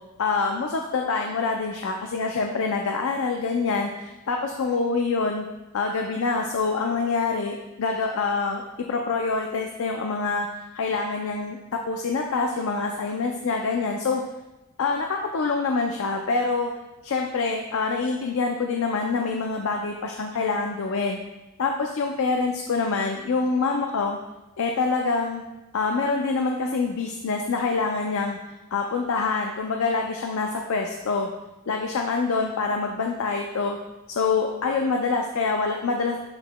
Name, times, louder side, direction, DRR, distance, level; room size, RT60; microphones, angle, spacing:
voice 1, 0.2-5.5 5.7-10.5 10.7-14.2 14.8-16.7 17.0-21.2 21.6-24.2 24.6-25.4 25.7-28.4 28.7-31.3 31.7-33.8 34.1-36.2, left 4 dB, 65° left, 2 dB, 0.5 m, -26 dB
11.5 x 3.9 x 2.2 m, 1.0 s
head